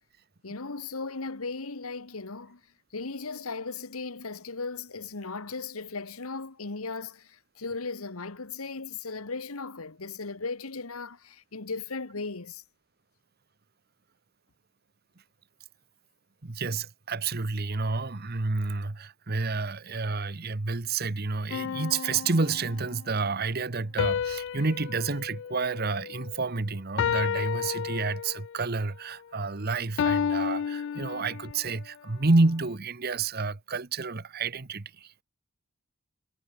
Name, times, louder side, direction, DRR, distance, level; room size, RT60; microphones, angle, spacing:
voice 1, 0.4-2.6 2.9-12.6, left 4 dB, 90° left, 1.5 m, -37 dB
voice 2, 16.4-35.1, right 3 dB, 45° right, 1.1 m, -29 dB
sound 1, 21.5-23.0 24.0-26.5 27.0-28.6 30.0-31.7, left 7 dB, 60° left, 0.3 m, -31 dB
head